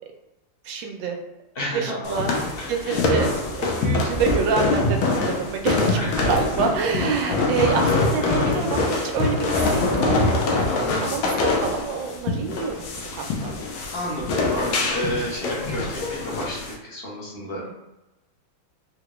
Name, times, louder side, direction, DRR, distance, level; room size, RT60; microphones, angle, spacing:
voice 1, 0.6-1.2 1.7-2.3 2.7-3.3 3.6-6.0 6.3-10.6 11.0-13.5 17.4-17.7, right 5 dB, 75° right, 3 dB, 1.2 m, -27 dB
voice 2, 1.5-2.2 2.6-2.7 6.0-6.3 8.3-8.6 10.7-11.2 13.9-17.7, equal, 45° left, -5 dB, 0.8 m, -31 dB
sound 1, 2.0-16.7, left 2 dB, 85° left, 1.4 m, -24 dB
3.8 x 2.2 x 2.9 m, 0.97 s
omnidirectional pair, 2.2 m